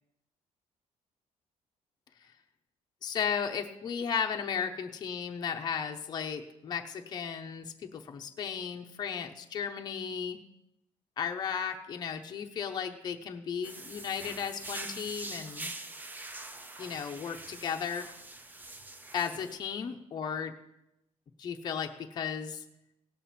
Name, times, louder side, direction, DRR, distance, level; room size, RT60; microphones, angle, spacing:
voice 1, 3.0-10.4 11.2-15.7 16.8-18.1 19.1-20.5 21.4-22.6, left 7 dB, 35° left, 4 dB, 0.7 m, -35 dB
sound 1, 13.6-19.6, right 2 dB, 15° right, 0.6 m, -44 dB
17.5 x 7.6 x 4.2 m, 0.87 s
cardioid pair, 180°, 13 cm